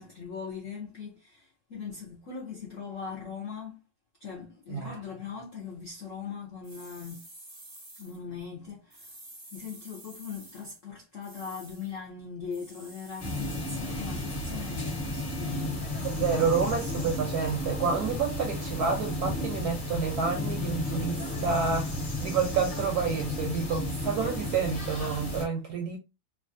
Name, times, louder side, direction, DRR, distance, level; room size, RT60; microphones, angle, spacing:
voice 1, 0.0-3.8 4.2-7.3 8.0-9.1 9.5-16.1, left 6 dB, 70° left, 0.7 m, -40 dB
sound 1, 6.6-8.2 8.9-10.8 11.2-11.9 12.5-13.9, right 1 dB, 40° right, 0.4 m, -50 dB
sound 2, 13.2-25.4, left 1 dB, 30° left, 1.0 m, -33 dB
voice 2, 16.0-21.9 22.2-26.0, right 5 dB, 70° right, 0.9 m, -29 dB
3.1 x 2.4 x 2.5 m
omnidirectional pair, 2.2 m